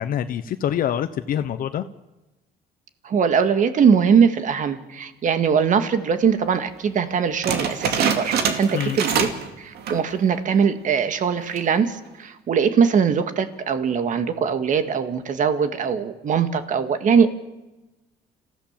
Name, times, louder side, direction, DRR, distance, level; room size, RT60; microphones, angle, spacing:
voice 1, 0.0-1.8 8.7-9.2, left 10 dB, 55° left, 10 dB, 0.9 m, -26 dB
voice 2, 3.0-9.3 9.6-17.4, right 6 dB, 50° right, 10 dB, 1.9 m, -21 dB
sound 1, 7.4-9.5 9.8-10.1 10.6-10.7 11.4-11.8, right 7 dB, 70° right, 2.5 m, -24 dB
29.5 x 15.5 x 7.5 m, 1.1 s
cardioid pair, 110°, 17 cm